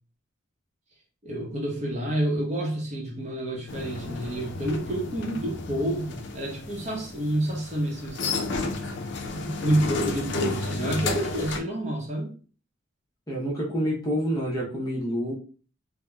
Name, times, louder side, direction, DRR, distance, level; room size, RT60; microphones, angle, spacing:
voice 1, 1.2-8.4 9.3-12.3, right 1 dB, 35° right, 0.7 m, -29 dB
sound 1, 3.7-11.6, left 3 dB, 65° left, 0.4 m, -32 dB
voice 2, 13.3-15.3, equal, 20° left, 0.7 m, -28 dB
3.8 x 2.0 x 2.2 m
head